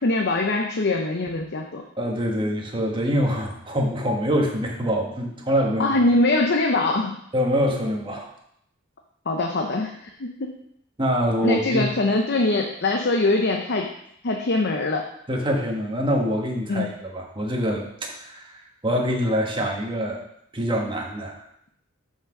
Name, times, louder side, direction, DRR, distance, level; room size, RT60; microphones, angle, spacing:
voice 1, 0.0-1.8 5.8-7.2 9.3-9.9 10.2-10.6 11.4-13.9 14.2-15.0 16.7-16.9, left 2 dB, 55° left, 3 dB, 0.7 m, -22 dB
voice 2, 2.0-6.0 7.3-8.3 11.0-11.9 15.3-18.5 18.8-20.2 20.5-21.4, equal, 25° right, 0 dB, 1.4 m, -25 dB
6.0 x 5.9 x 6.0 m, 0.73 s
head